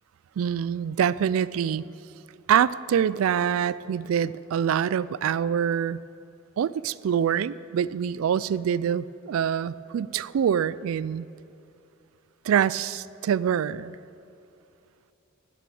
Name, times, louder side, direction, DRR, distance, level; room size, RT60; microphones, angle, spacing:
voice 1, 0.4-1.9 2.5-6.0 6.6-11.3 12.4-14.0, right 8 dB, 85° right, 18 dB, 0.3 m, -25 dB
16.5 x 6.1 x 7.0 m, 2.7 s
head